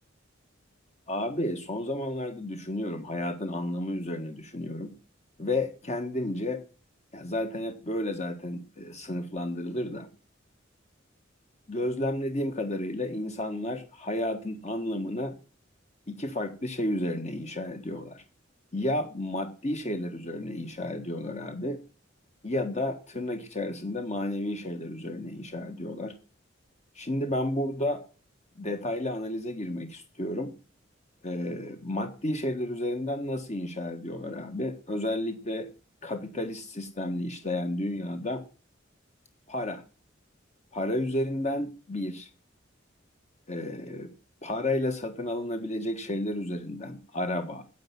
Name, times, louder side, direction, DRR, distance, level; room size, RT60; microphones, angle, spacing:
voice 1, 1.1-4.9 5.4-6.6 7.1-10.1 11.7-15.4 16.1-18.2 18.7-21.8 22.4-26.1 26.9-28.0 28.5-30.5 31.2-35.7 36.0-38.4 39.5-39.8 40.7-42.3 43.5-44.1 44.4-47.6, left 1 dB, 35° left, 6 dB, 1.6 m, -32 dB
10.5 x 8.3 x 9.4 m, 0.35 s
head